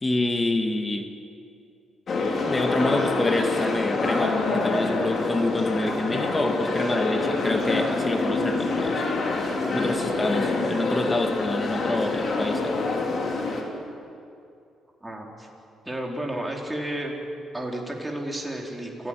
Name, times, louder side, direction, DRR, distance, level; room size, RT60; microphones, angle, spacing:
voice 1, 0.0-1.1 2.5-9.1 9.7-12.7, left 2 dB, 20° left, 5 dB, 1.9 m, -27 dB
sound 1, 2.1-13.6, left 3 dB, 50° left, 4.0 m, -26 dB
voice 2, 15.0-15.5 15.8-17.2 17.5-19.1, right 1 dB, 10° right, 0 dB, 4.6 m, -32 dB
28.5 x 15.0 x 9.3 m, 2.6 s
cardioid pair, 90°, 0 cm